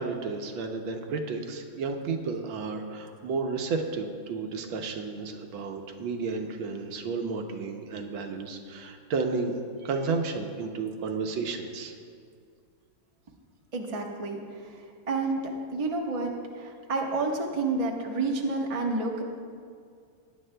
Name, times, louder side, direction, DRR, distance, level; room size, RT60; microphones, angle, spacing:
voice 1, 0.0-11.9, right 4 dB, 70° right, 4 dB, 1.5 m, -32 dB
voice 2, 13.7-14.7 15.1-19.2, right 3 dB, 40° right, 0 dB, 0.4 m, -30 dB
18.5 x 10.0 x 2.2 m, 2.2 s
omnidirectional pair, 2.4 m